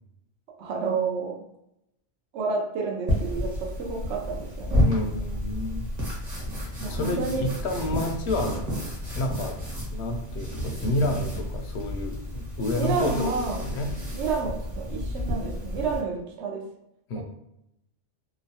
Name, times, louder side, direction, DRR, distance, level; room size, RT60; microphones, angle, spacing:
voice 1, 0.6-1.4 2.3-4.8 6.8-7.5 12.7-13.8 14.1-16.7 17.1-17.2, right 4 dB, 80° right, 0 dB, 0.9 m, -30 dB
sound 1, 3.1-16.0, left 1 dB, 40° right, 1.1 m, -31 dB
voice 2, 4.8-5.9 6.9-8.6 9.1-9.6 9.9-13.3 13.6-13.9 17.1-17.2, left 1 dB, 70° left, 4 dB, 0.8 m, -29 dB
2.9 x 2.1 x 2.7 m, 0.80 s
omnidirectional pair, 1.2 m